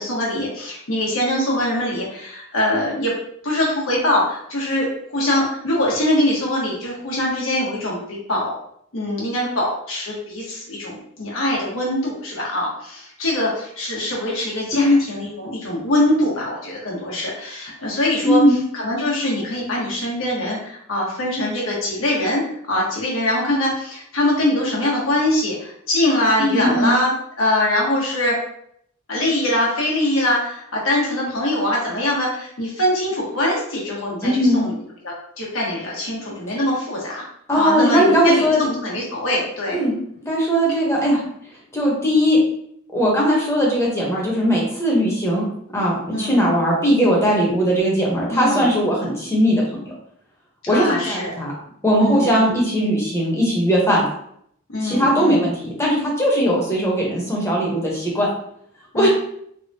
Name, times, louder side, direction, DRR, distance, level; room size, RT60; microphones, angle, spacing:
voice 1, 0.0-3.1 3.4-8.5 8.9-18.4 18.7-22.4 22.7-27.1 27.4-28.4 29.1-34.7 35.0-37.2 37.5-39.8 46.1-46.5 48.3-48.7 50.7-51.3 52.0-52.6 54.7-55.5 58.9-59.1, left 1 dB, 75° left, -4 dB, 1.2 m, -23 dB
voice 2, 18.2-18.6 26.4-27.0 34.2-34.6 36.5-36.6 37.5-38.6 39.7-39.9 40.2-41.3 41.7-42.4 42.9-45.4 45.7-49.9 50.7-51.5 51.8-54.0 54.8-58.3 58.9-59.1, equal, 15° left, -4 dB, 0.9 m, -19 dB
3.4 x 2.2 x 2.7 m, 0.69 s
head